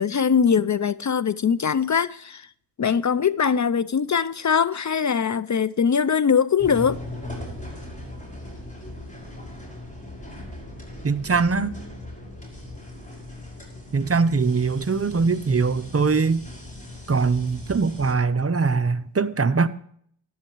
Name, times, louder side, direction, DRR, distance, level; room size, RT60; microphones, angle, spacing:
voice 1, 0.0-2.5 2.8-7.0, left 7 dB, 40° left, 0.5 m, -22 dB
sound 1, 6.6-18.1, left 1 dB, 15° left, 5.3 m, -39 dB
voice 2, 11.0-11.8 13.9-16.4 17.1-19.7, right 4 dB, 30° right, 0.7 m, -22 dB
13.0 x 10.0 x 3.0 m
cardioid pair, 55°, 45 cm